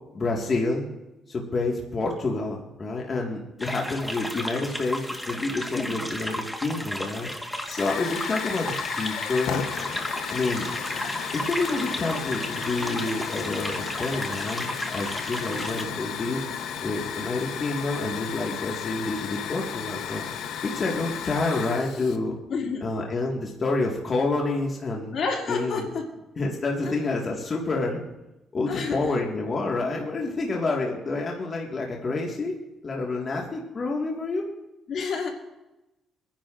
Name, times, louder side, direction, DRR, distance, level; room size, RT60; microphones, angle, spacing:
voice 1, 0.1-0.9 1.3-7.3 7.7-9.6 10.3-10.7 11.3-16.4 16.8-20.2 20.6-22.4 22.8-25.1 25.5-25.9 26.4-28.0 28.5-32.6 32.8-34.5, left 3 dB, 40° left, -1 dB, 1.8 m, -28 dB
sound 1, 3.6-15.8, equal, 5° left, 1.5 m, -34 dB
Hiss / Fire, 7.7-22.2, left 8 dB, 85° left, 0.9 m, -34 dB
voice 2, 22.5-22.9 25.1-26.1 26.8-27.0 28.7-29.1 34.9-35.3, left 4 dB, 65° left, 1 dB, 2.4 m, -29 dB
25.0 x 10.5 x 2.5 m, 0.99 s
cardioid pair, 90°, 0 cm